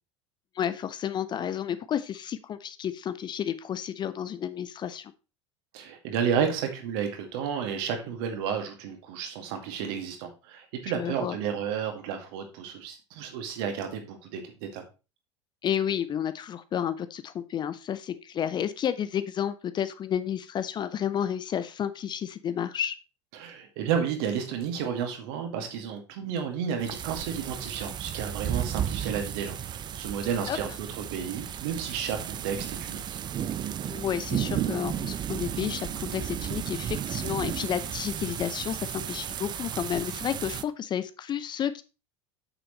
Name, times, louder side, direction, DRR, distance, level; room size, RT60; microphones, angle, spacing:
voice 1, 0.6-5.1 10.9-11.4 15.6-23.0 30.5-30.6 33.9-41.8, left 9 dB, 30° left, 13 dB, 0.6 m, -31 dB
voice 2, 5.7-14.8 23.3-33.2, right 7 dB, 55° right, 5 dB, 2.1 m, -32 dB
sound 1, 26.8-40.6, right 9 dB, 30° right, 0.6 m, -34 dB
8.8 x 6.9 x 3.1 m, 0.30 s
figure-of-eight pair, 75°, 15 cm